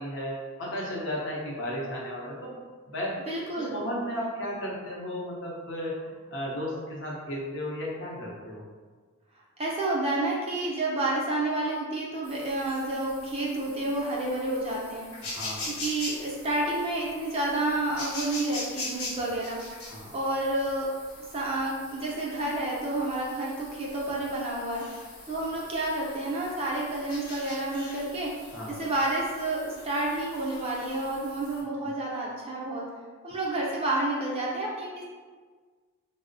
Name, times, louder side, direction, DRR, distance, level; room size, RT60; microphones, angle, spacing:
voice 1, 0.0-2.6 2.9-3.1 3.6-8.6 15.2-15.7 19.9-20.1 28.5-28.7, equal, 60° left, -4 dB, 0.7 m, -34 dB
voice 2, 3.3-3.8 9.6-15.1 15.6-19.6 20.1-20.9 21.3-24.8 25.3-28.3 28.7-32.8 33.2-35.0, right 2 dB, 25° right, -4 dB, 0.5 m, -30 dB
sound 1, 12.2-31.6, left 2 dB, 90° left, 0.9 m, -42 dB
3.9 x 2.0 x 2.5 m, 1.5 s
head